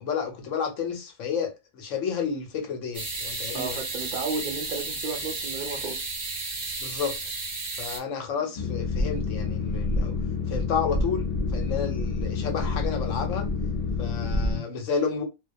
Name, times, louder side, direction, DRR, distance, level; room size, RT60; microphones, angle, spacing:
voice 1, 0.0-3.8 6.8-7.2 7.8-10.1 10.5-13.5 14.0-15.2, left 6 dB, 70° left, 1.0 m, -31 dB
sound 1, 2.9-8.0, right 3 dB, 35° right, 0.7 m, -33 dB
voice 2, 3.5-6.0, right 3 dB, 75° right, 0.4 m, -33 dB
Boat Water vehicle, 8.6-14.6, left 3 dB, 45° left, 0.6 m, -28 dB
2.3 x 2.2 x 2.5 m
omnidirectional pair, 1.4 m